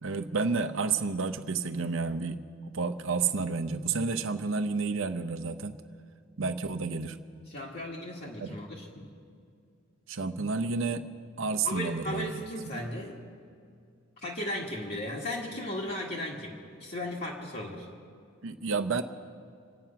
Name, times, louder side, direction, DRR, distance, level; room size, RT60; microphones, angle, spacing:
voice 1, 0.0-2.4 2.7-5.8 6.4-7.2 8.4-8.6 10.1-11.1 11.4-12.4 18.4-19.0, right 4 dB, 70° right, 9 dB, 0.8 m, -30 dB
voice 2, 7.5-9.1 11.6-13.2 14.2-17.9, left 1 dB, 50° left, -5 dB, 1.8 m, -36 dB
27.0 x 9.3 x 5.8 m, 2.2 s
head